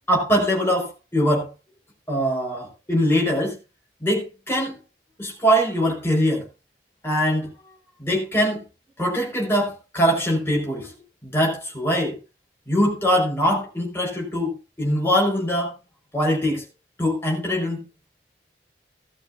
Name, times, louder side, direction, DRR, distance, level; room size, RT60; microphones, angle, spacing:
voice 1, 0.1-1.5 2.1-3.6 4.0-4.8 5.2-6.5 7.0-7.5 8.0-8.6 9.0-12.2 12.7-15.7 16.1-16.6 17.0-17.8, equal, 15° left, -1 dB, 4.9 m, -22 dB
17.5 x 12.0 x 2.6 m, 0.28 s
head